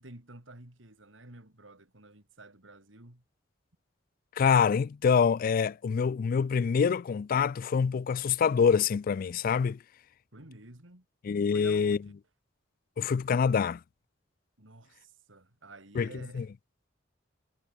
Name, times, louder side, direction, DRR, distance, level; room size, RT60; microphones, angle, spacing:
voice 1, 0.0-3.2 10.3-11.1 11.5-12.1 14.6-16.5, right 2 dB, 90° right, 3.8 m, -50 dB
voice 2, 4.4-9.8 11.2-12.0 13.0-13.8 16.0-16.1 16.3-16.4, left 6 dB, 50° left, 0.3 m, -25 dB
head